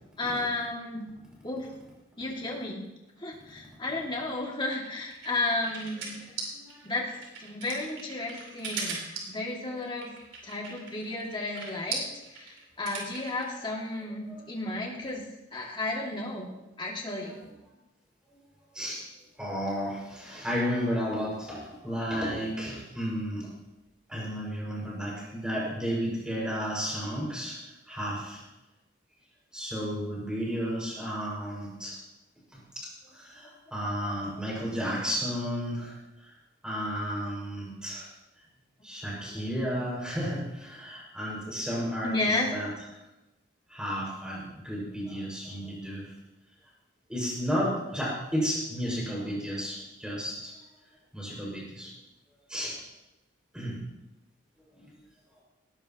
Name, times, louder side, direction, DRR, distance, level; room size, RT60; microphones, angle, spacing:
voice 1, 0.2-1.0 1.4-1.7 2.2-2.9 3.2-6.1 6.8-7.1 7.4-10.1 10.4-12.0 12.3-15.2 15.5-16.5 16.8-17.4 33.4-33.5 42.0-42.5, left 2 dB, 25° left, -2 dB, 2.4 m, -33 dB
sound 1, 4.7-13.4, right 4 dB, 80° right, 4.3 m, -38 dB
voice 2, 6.5-6.9 9.7-9.8 13.6-13.7 14.3-14.4 18.7-19.1 19.4-23.5 24.1-28.4 29.5-32.0 32.5-36.3 36.6-38.1 38.8-42.7 43.7-46.1 47.1-50.6 51.1-51.9 52.5-52.8 53.5-53.8 54.8-54.9, equal, 5° right, -5 dB, 5.9 m, -33 dB
19.0 x 17.5 x 3.0 m, 1.0 s
head